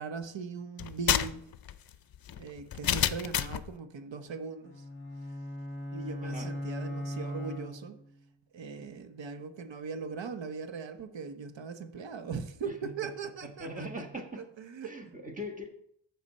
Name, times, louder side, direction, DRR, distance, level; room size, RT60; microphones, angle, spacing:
voice 1, 0.0-1.5 2.3-4.8 5.9-8.0 8.5-13.9 14.4-15.0, right 5 dB, 70° right, 1.1 m, -40 dB
sound 1, 0.8-3.7, left 10 dB, 50° left, 0.5 m, -30 dB
sound 2, 4.6-8.2, equal, 25° left, 1.4 m, -38 dB
voice 2, 13.6-14.4 14.8-15.7, equal, 15° right, 1.4 m, -40 dB
14.0 x 6.1 x 4.2 m
wide cardioid pair, 155°, 46 cm